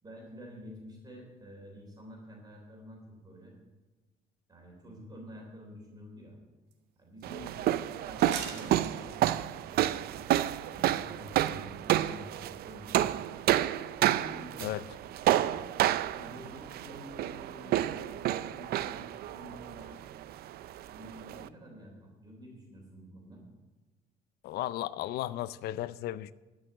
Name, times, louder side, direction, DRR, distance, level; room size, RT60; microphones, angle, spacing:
voice 1, 0.0-3.5 4.5-6.4 7.0-10.2 10.7-13.2 13.9-14.7 15.1-15.6 16.1-20.0 20.9-23.4, equal, 25° right, 3.4 m, -49 dB
sound 1, 6.7-6.8 7.2-7.3 8.2-9.6 10.2-11.2 11.5-11.6 11.8-12.1 12.4-12.5 12.7-12.8, right 7 dB, 85° right, 1.9 m, -41 dB
sound 2, 7.2-21.5, right 13 dB, 65° right, 0.5 m, -30 dB
voice 2, 24.4-26.3, left 14 dB, 70° left, 0.5 m, -35 dB
13.0 x 6.3 x 8.0 m
cardioid pair, 110°, 17 cm